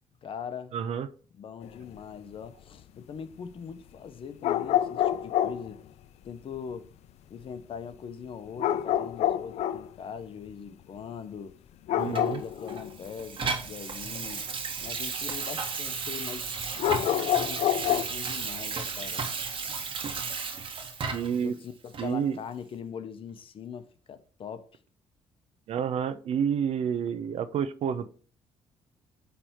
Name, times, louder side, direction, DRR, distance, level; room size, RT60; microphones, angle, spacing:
voice 1, 0.2-0.8 1.3-5.8 6.2-6.9 7.3-11.6 11.9-14.5 14.8-16.5 16.9-19.2 21.3-24.7, left 7 dB, 50° left, 0.9 m, -41 dB
voice 2, 0.7-1.1 12.0-12.4 21.1-21.5 22.0-22.4 25.7-28.1, right 7 dB, 65° right, 0.7 m, -29 dB
sound 1, 1.6-2.0 4.4-5.7 8.6-9.9 11.9-13.0 16.8-18.0, left 11 dB, 70° left, 0.5 m, -27 dB
Water tap faucet / Sink (filling or washing), 12.1-21.4 21.9-22.1, right 5 dB, 50° right, 1.5 m, -34 dB
8.7 x 3.4 x 4.5 m
cardioid pair, 95°, 12 cm